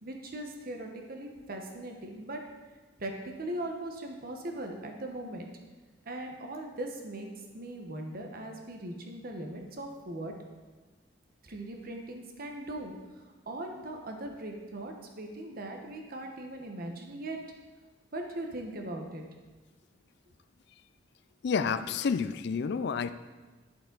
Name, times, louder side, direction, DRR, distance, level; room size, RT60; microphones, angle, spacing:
voice 1, 0.0-2.4 3.0-5.5 6.0-7.3 7.5-10.3 11.4-17.4 18.1-19.2, right 1 dB, 55° right, 3 dB, 1.1 m, -39 dB
voice 2, 21.4-23.1, left 5 dB, 65° left, 12 dB, 0.4 m, -29 dB
11.0 x 6.8 x 4.0 m, 1.2 s
head